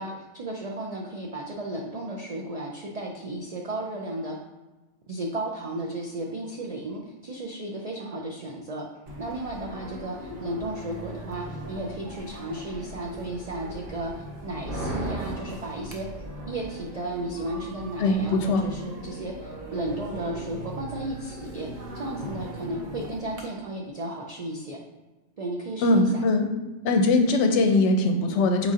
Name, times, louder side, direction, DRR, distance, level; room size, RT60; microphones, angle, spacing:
voice 1, 0.0-4.4 5.1-8.9 9.2-14.1 14.4-24.8 25.4-26.2, right 1 dB, 75° right, -1 dB, 0.3 m, -34 dB
sound 1, 9.1-23.4, right 1 dB, 50° right, 0.8 m, -38 dB
voice 2, 18.0-18.7 25.8-26.5 26.8-28.7, left 2 dB, 70° left, 5 dB, 0.8 m, -21 dB
4.6 x 4.0 x 2.5 m, 1.1 s
omnidirectional pair, 1.3 m